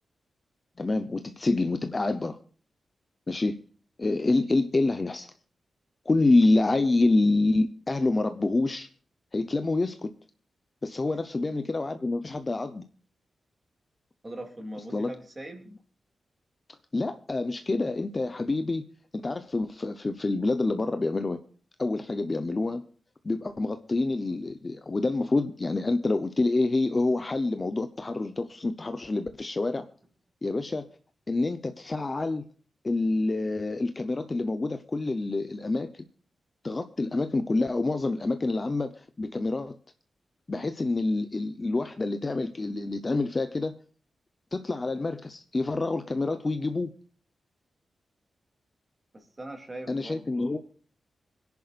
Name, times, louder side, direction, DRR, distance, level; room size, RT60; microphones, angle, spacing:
voice 1, 0.8-2.4 3.3-3.6 4.0-5.3 6.1-8.9 9.3-10.1 10.8-12.9 14.9-15.1 16.9-18.9 19.1-21.4 21.8-22.8 23.2-29.9 30.4-30.9 31.3-32.4 32.8-36.0 36.6-39.8 40.5-43.8 44.5-46.9 49.9-50.6, left 2 dB, 25° left, 0.8 m, -27 dB
voice 2, 14.2-15.7 49.1-50.6, right 1 dB, 20° right, 2.9 m, -41 dB
26.0 x 10.5 x 2.5 m
wide cardioid pair, 155°, 0 cm